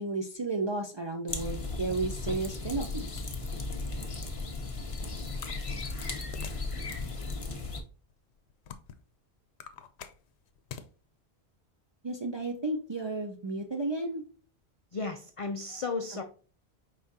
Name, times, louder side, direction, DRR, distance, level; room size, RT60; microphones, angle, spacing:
voice 1, 0.0-3.1 12.0-14.2, right 2 dB, 45° right, 2 dB, 0.3 m, -33 dB
sound 1, 1.3-7.8, left 3 dB, 35° left, 0.7 m, -36 dB
sound 2, 5.4-6.7 7.3-7.4 8.1-9.1 9.5-10.9, left 8 dB, 90° left, 0.9 m, -45 dB
voice 2, 14.9-16.2, left 4 dB, 60° left, 5 dB, 0.3 m, -34 dB
4.9 x 3.6 x 2.7 m, 0.39 s
omnidirectional pair, 1.1 m